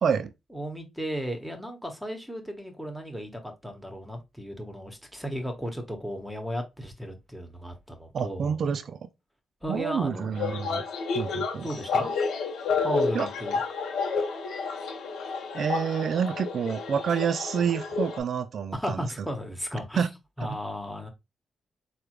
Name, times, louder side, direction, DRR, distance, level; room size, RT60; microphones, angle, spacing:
voice 1, 0.0-0.3 8.1-9.1 9.7-10.8 11.1-11.7 13.1-13.3 15.5-19.0 20.0-20.1 20.5-20.6, right 7 dB, 65° right, 0.3 m, -28 dB
voice 2, 0.5-8.6 9.6-10.3 11.6-12.1 12.8-13.6 18.7-20.0 20.4-21.1, equal, 5° right, 1.0 m, -35 dB
sound 1, 10.4-18.2, left 4 dB, 80° left, 0.6 m, -30 dB
3.5 x 2.1 x 3.0 m
supercardioid pair, 50°, 0 cm